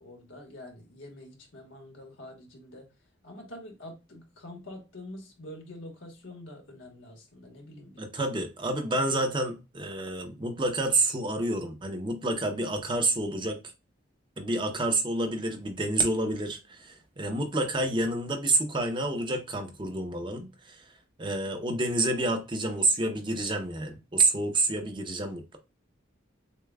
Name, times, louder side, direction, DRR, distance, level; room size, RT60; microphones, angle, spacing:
voice 1, 0.0-2.9 3.2-8.0, left 1 dB, 80° left, 1.3 m, -46 dB
voice 2, 8.0-13.6 14.4-20.8 21.2-25.6, right 2 dB, 25° right, 0.7 m, -28 dB
6.6 x 2.2 x 2.3 m
head